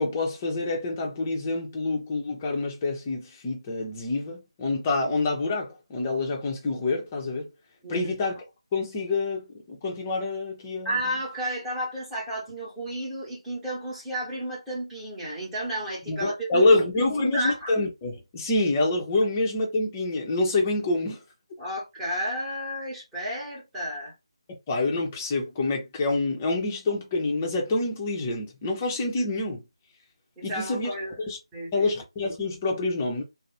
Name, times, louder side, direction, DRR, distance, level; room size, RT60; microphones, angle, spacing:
voice 1, 0.0-7.5 7.9-8.4 8.7-10.9 16.1-21.2 24.7-29.6 30.4-30.9 31.3-31.4 31.7-33.2, left 2 dB, 20° left, 0.6 m, -27 dB
voice 2, 7.8-8.1 10.8-17.7 21.6-24.1 30.4-31.2 31.5-31.9, equal, 5° right, 1.0 m, -32 dB
2.4 x 2.0 x 3.0 m
figure-of-eight pair, 160°, 3 cm